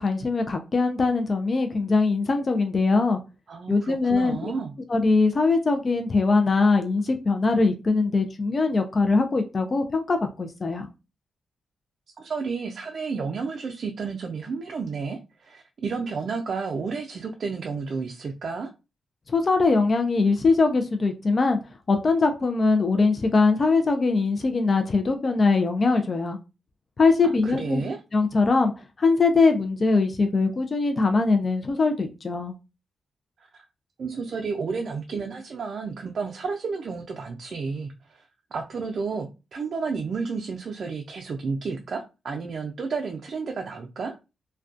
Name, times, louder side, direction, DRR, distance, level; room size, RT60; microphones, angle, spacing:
voice 1, 0.0-3.2 3.7-4.5 4.9-10.9 19.3-21.6 21.9-26.4 27.0-27.8 28.1-28.7 29.0-32.5, left 3 dB, 45° left, 5 dB, 0.4 m, -22 dB
voice 2, 3.5-4.7 12.2-18.7 27.2-28.0 34.0-38.2 38.5-44.1, right 4 dB, 60° right, 3 dB, 0.4 m, -31 dB
2.3 x 2.2 x 2.4 m, 0.28 s
supercardioid pair, 55°, 0 cm